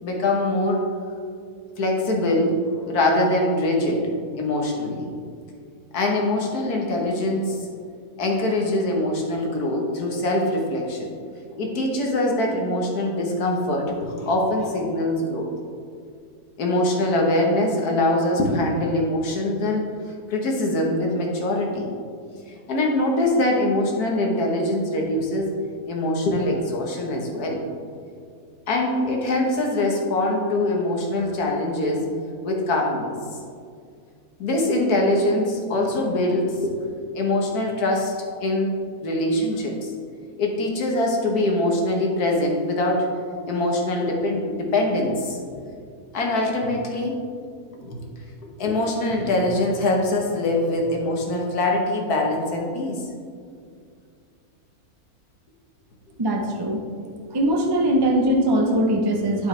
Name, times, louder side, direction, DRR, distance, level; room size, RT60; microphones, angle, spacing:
voice 1, 0.0-0.9 1.8-2.6 2.8-4.1 4.3-5.1 5.9-7.7 8.2-11.1 11.6-15.5 16.6-19.8 20.3-21.9 22.5-25.5 25.9-27.6 28.7-32.0 32.4-33.1 34.4-36.7 37.1-38.1 38.4-38.7 39.0-39.9 40.4-43.1 43.5-45.4 46.1-47.1 47.8-48.0 48.6-53.0, left 1 dB, 80° left, 0 dB, 1.7 m, -23 dB
voice 2, 56.2-56.8 57.3-59.5, right 1 dB, 35° right, 1 dB, 0.4 m, -21 dB
9.4 x 7.3 x 3.3 m, 2.3 s
omnidirectional pair, 1.6 m